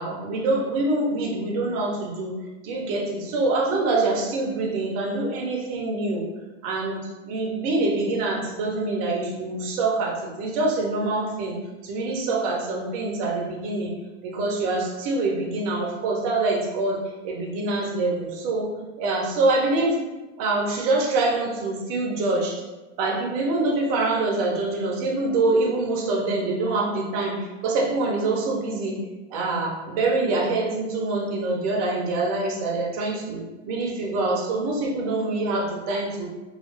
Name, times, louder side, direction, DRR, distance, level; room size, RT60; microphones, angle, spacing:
voice 1, 0.0-2.3 2.6-6.3 6.6-11.6 11.8-13.9 14.2-18.7 19.0-20.0 20.4-22.6 23.0-29.0 29.3-36.3, right 2 dB, 30° right, -1 dB, 0.4 m, -25 dB
2.3 x 2.1 x 3.0 m, 1.1 s
supercardioid pair, 145°, 39 cm